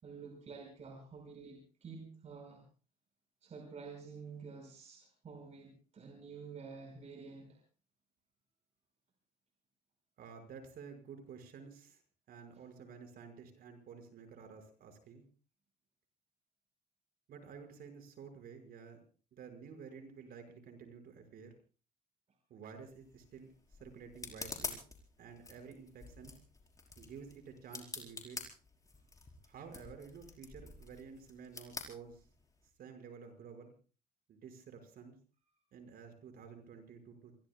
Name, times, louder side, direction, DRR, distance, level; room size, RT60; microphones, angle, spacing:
voice 1, 0.0-2.6 3.4-7.6, right 5 dB, 40° right, 1 dB, 5.4 m, -50 dB
voice 2, 10.2-12.0 12.3-15.3 17.3-19.0 19.3-21.5 22.5-23.5 23.8-24.8 25.2-26.4 27.0-28.4 29.4-32.2 32.8-33.7 34.3-35.2 35.7-37.3, right 6 dB, 60° right, 6 dB, 5.7 m, -51 dB
sound 1, 22.8-32.7, left 3 dB, 20° left, 4.8 m, -48 dB
28.0 x 22.0 x 2.3 m, 0.38 s
cardioid pair, 110°, 17 cm